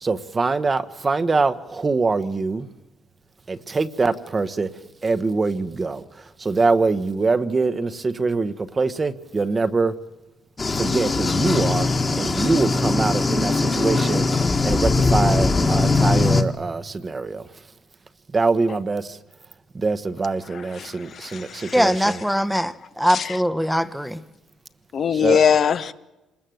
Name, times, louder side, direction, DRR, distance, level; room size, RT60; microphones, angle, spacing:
voice 1, 0.0-2.7 3.5-4.7 5.0-9.9 10.7-11.9 12.2-14.2 14.6-17.4 18.3-19.2 19.7-22.1 25.1-25.4, right 3 dB, 25° right, 1.1 m, -23 dB
sound 1, 10.6-16.4, left 3 dB, 25° left, 1.7 m, -20 dB
voice 2, 20.5-21.8 23.1-23.4 24.9-25.9, left 7 dB, 50° left, 0.9 m, -22 dB
voice 3, 21.7-24.2, equal, ahead, 1.0 m, -22 dB
27.0 x 20.0 x 7.8 m
cardioid pair, 120°, 0 cm